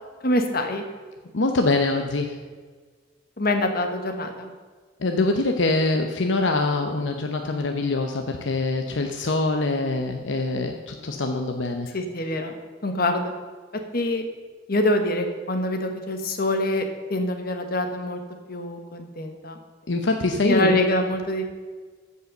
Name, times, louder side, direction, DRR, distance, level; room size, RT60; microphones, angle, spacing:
voice 1, 0.2-0.9 3.4-4.5 11.9-12.5 12.8-13.3 13.9-14.2 14.7-16.8 17.1-18.2 18.5-19.6 20.4-21.5, left 1 dB, 50° left, 6 dB, 1.4 m, -25 dB
voice 2, 1.3-2.4 5.0-11.9 19.9-20.8, left 2 dB, 75° left, 4 dB, 0.8 m, -24 dB
14.5 x 5.5 x 6.6 m, 1.5 s
head